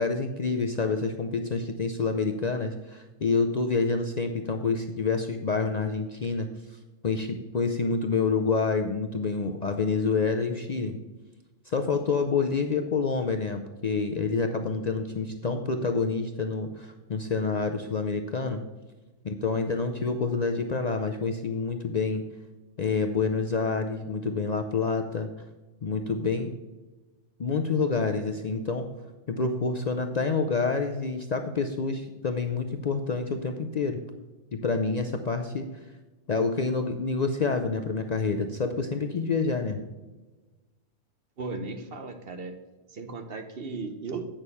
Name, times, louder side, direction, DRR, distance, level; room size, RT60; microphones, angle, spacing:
voice 1, 0.0-6.5 7.0-11.0 11.7-18.6 19.2-22.2 22.8-25.3 25.8-26.5 27.4-28.9 29.3-34.0 34.5-35.7 36.3-39.8, left 4 dB, 50° left, 5 dB, 0.5 m, -27 dB
voice 2, 41.4-42.5 42.9-44.3, right 3 dB, 55° right, 7 dB, 1.1 m, -36 dB
8.9 x 6.5 x 5.4 m, 1.2 s
omnidirectional pair, 1.2 m